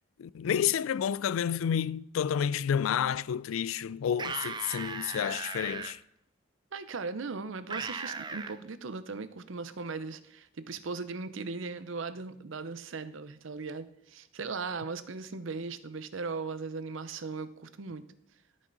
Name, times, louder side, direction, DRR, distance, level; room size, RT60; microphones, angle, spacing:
voice 1, 0.2-6.0, left 8 dB, 85° left, 0.3 m, -30 dB
sound 1, 4.1-5.9 7.7-8.5, right 4 dB, 20° right, 0.5 m, -37 dB
voice 2, 6.7-18.0, right 4 dB, 70° right, 0.7 m, -38 dB
13.0 x 5.5 x 3.9 m
head